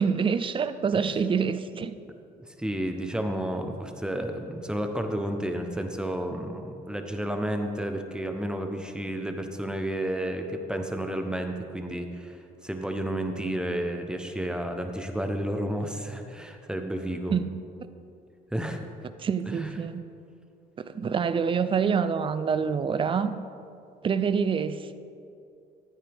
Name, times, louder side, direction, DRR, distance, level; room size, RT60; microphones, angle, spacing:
voice 1, 0.0-1.9 17.3-17.5 19.2-20.0 20.8-23.3 24.0-25.0, right 6 dB, 30° right, 12 dB, 0.5 m, -26 dB
voice 2, 2.6-17.3 18.5-18.8 19.5-19.8, right 1 dB, 5° right, 5 dB, 0.9 m, -31 dB
14.5 x 9.4 x 3.6 m, 2.5 s
cardioid pair, 110°, 17 cm